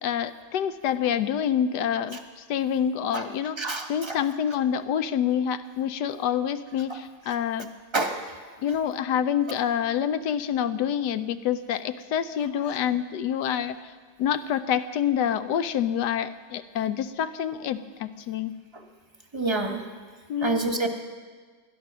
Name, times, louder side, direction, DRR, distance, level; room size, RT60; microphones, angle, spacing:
voice 1, 0.0-7.7 8.6-13.9 14.2-18.6 20.3-20.7, left 9 dB, 75° left, 12 dB, 1.1 m, -27 dB
voice 2, 3.6-4.2 7.9-8.2 19.3-19.8 20.4-20.9, right 3 dB, 20° right, 4 dB, 1.0 m, -27 dB
19.5 x 12.0 x 6.0 m, 1.5 s
omnidirectional pair, 2.0 m